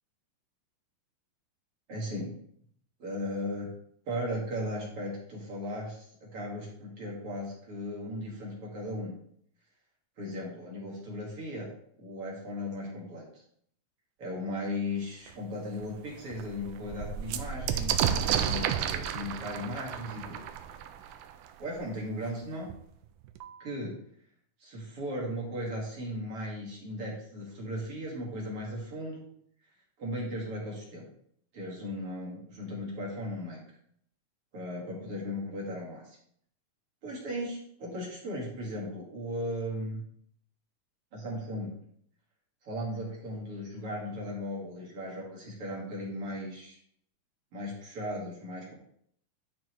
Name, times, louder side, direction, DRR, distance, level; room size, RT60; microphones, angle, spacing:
voice 1, 1.9-2.3 3.0-3.7 4.1-9.1 10.2-11.7 12.0-13.4 14.2-20.4 21.6-22.7 23.6-23.9 24.6-29.2 30.0-31.1 31.5-33.6 34.5-36.2 37.0-40.0 41.1-41.8 42.6-46.8 47.5-48.7, left 1 dB, 45° right, -4 dB, 2.6 m, -37 dB
sound 1, 15.3-15.4 15.8-15.9 16.2-21.7 22.7-22.8 23.0-23.7, right 9 dB, 80° right, 2.0 m, -32 dB
11.0 x 5.9 x 3.1 m, 0.66 s
omnidirectional pair, 3.8 m